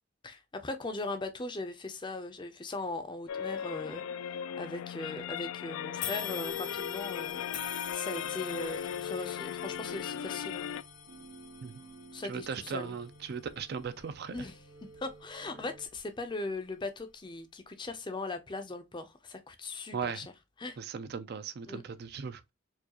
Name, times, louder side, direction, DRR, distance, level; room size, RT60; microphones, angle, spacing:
voice 1, 0.2-4.0 4.6-10.7 12.1-13.0 14.3-14.6 15.0-20.2 20.6-20.8 21.7-21.8, left 2 dB, 20° left, 0.5 m, -39 dB
sound 1, 3.3-10.8, left 9 dB, 85° left, 0.3 m, -37 dB
sound 2, 6.0-15.3 15.8-16.0 17.0-17.1, left 8 dB, 55° left, 0.8 m, -45 dB
sound 3, 8.1-15.9, right 3 dB, 75° right, 0.8 m, -54 dB
voice 2, 12.3-14.4 19.9-20.3 20.8-22.4, right 6 dB, 50° right, 0.4 m, -38 dB
4.6 x 2.3 x 2.8 m
head